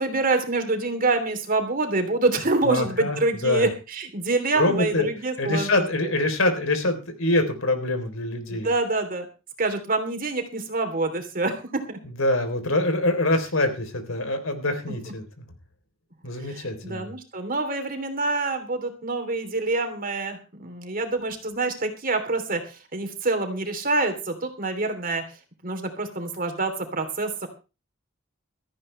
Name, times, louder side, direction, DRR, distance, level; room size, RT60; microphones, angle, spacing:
voice 1, 0.0-5.9 8.5-9.2 9.6-12.0 14.9-15.0 16.4-25.2 25.6-27.5, right 3 dB, 45° right, 6 dB, 3.3 m, -26 dB
voice 2, 2.6-3.2 3.4-3.7 4.6-5.1 5.4-8.7 12.2-15.2 16.2-17.1, left 2 dB, 70° left, 7 dB, 3.7 m, -24 dB
17.0 x 14.0 x 3.3 m, 0.31 s
head